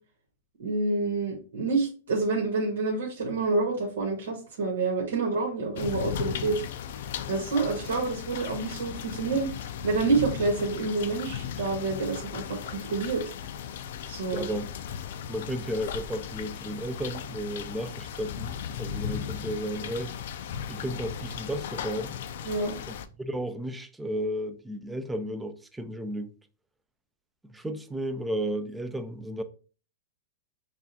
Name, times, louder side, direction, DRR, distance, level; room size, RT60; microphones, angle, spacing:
voice 1, 0.6-6.6 7.3-9.5 9.8-13.3 14.1-14.5 22.4-22.7, right 3 dB, 80° right, 1.4 m, -28 dB
sound 1, 5.8-23.1, left 8 dB, 65° left, 0.4 m, -37 dB
voice 2, 14.3-14.7 15.3-20.1 20.7-22.1 22.9-26.4 27.4-29.4, equal, 5° right, 0.4 m, -33 dB
5.9 x 2.4 x 2.8 m
hypercardioid pair, 150°, 0 cm